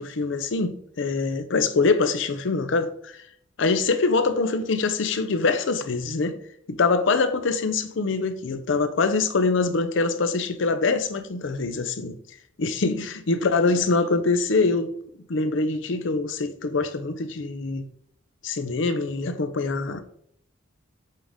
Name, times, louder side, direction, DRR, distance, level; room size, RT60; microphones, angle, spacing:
voice 1, 0.0-3.1 3.6-6.3 6.7-12.2 12.6-14.9 15.3-17.8 18.4-20.0, left 3 dB, 65° left, 0.5 m, -24 dB
7.4 x 3.7 x 3.4 m
head